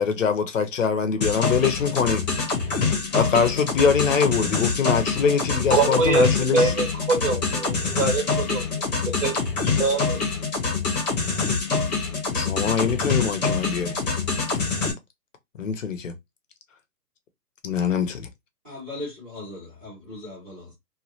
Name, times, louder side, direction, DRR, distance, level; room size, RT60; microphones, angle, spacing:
voice 1, 0.0-2.2 3.1-6.6 12.3-14.0 15.6-16.1 17.6-18.3, left 6 dB, 50° left, 0.8 m, -23 dB
sound 1, 1.2-14.9, left 4 dB, 25° left, 0.9 m, -25 dB
voice 2, 5.7-10.3, right 4 dB, 50° right, 1.4 m, -25 dB
voice 3, 18.6-20.7, left 2 dB, 5° right, 0.6 m, -38 dB
3.1 x 2.4 x 2.5 m
hypercardioid pair, 150°, 48 cm